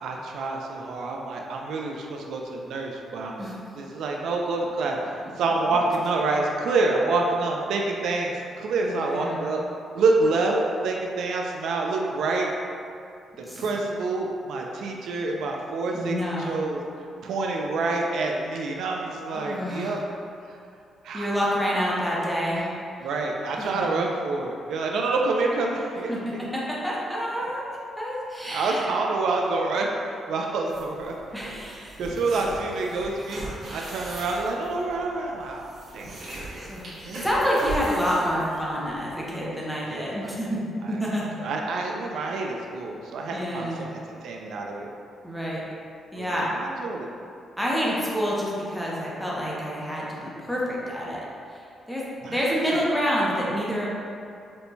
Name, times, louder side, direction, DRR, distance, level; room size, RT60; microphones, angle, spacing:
voice 1, 0.0-3.5 3.8-9.6 9.9-10.5 10.8-12.5 13.4-16.8 17.2-20.0 21.0-21.4 23.0-26.1 28.5-31.2 31.4-33.4 33.7-36.2 37.0-37.3 37.6-37.7 39.9-40.3 40.8-41.0 41.4-44.9 46.2-47.1 52.2-52.4, right 3 dB, 70° right, 0 dB, 0.3 m, -27 dB
voice 2, 8.8-9.4 13.4-13.7 15.9-16.6 19.3-20.0 21.1-22.7 23.0-23.1 23.6-23.9 26.1-26.2 26.5-27.6 28.0-28.9 31.3-32.0 36.6-41.3 43.3-43.9 45.2-45.6 46.1-46.5 47.6-51.6 51.9-53.9, equal, ahead, -6 dB, 0.5 m, -28 dB
sound 1, 30.7-39.4, right 2 dB, 55° right, 0.9 m, -40 dB
4.4 x 2.1 x 2.6 m, 2.4 s
cardioid pair, 165°, 0 cm